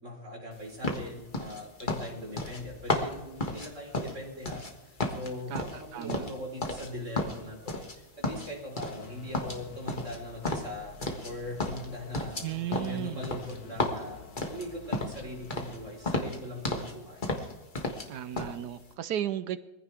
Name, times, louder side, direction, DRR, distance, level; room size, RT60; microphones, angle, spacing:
voice 1, 0.0-12.4 12.7-17.4, left 1 dB, 40° right, -1 dB, 4.7 m, -41 dB
sound 1, 0.8-4.7 5.0-6.9 7.2-8.0 8.2-9.1 9.3-11.3 11.6-15.2 15.5-15.8 16.0-16.9 17.2-18.1 18.4-18.6, left 2 dB, 30° left, 1.7 m, -33 dB
voice 2, 5.9-6.2 12.4-13.2 18.1-19.6, right 11 dB, 70° right, 13 dB, 1.2 m, -34 dB
sound 2, 8.8-16.6, left 4 dB, 80° left, 2.0 m, -50 dB
22.5 x 15.5 x 3.5 m, 1.0 s
omnidirectional pair, 1.9 m